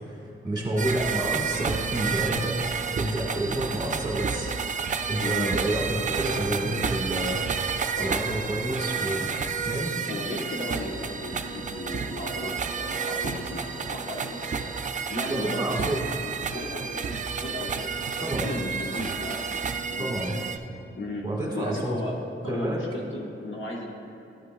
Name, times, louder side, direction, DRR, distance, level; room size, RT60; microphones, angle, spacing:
voice 1, 0.1-4.6 5.1-7.4 8.0-9.3 9.6-10.0 15.3-16.0 18.2-18.5 20.0-20.4 21.2-22.0 22.5-22.8, right 1 dB, 20° right, -2 dB, 1.6 m, -29 dB
sound 1, 0.8-20.6, right 6 dB, 35° right, 0.4 m, -30 dB
voice 2, 5.2-5.5 8.0-8.2 10.1-14.7 15.1-20.1 20.9-21.3 21.5-22.2 22.4-23.9, left 1 dB, 65° left, -2 dB, 1.2 m, -35 dB
12.0 x 8.1 x 2.3 m, 2.7 s
wide cardioid pair, 105°, 21 cm